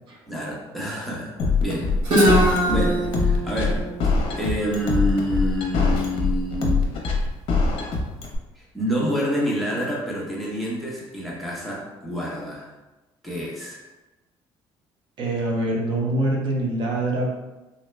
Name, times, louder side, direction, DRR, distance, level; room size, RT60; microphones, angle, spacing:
voice 1, 0.3-1.3 1.6-1.9 2.7-7.1 8.5-12.7 13.2-13.8, equal, ahead, -5 dB, 0.7 m, -28 dB
sound 1, 1.4-8.4, left 4 dB, 60° left, 0.6 m, -22 dB
Guitar, 2.0-5.8, right 1 dB, 85° right, 1.1 m, -23 dB
voice 2, 15.2-17.3, right 1 dB, 50° right, -1 dB, 0.6 m, -24 dB
3.7 x 2.1 x 3.2 m, 1.1 s
cardioid pair, 150°, 10 cm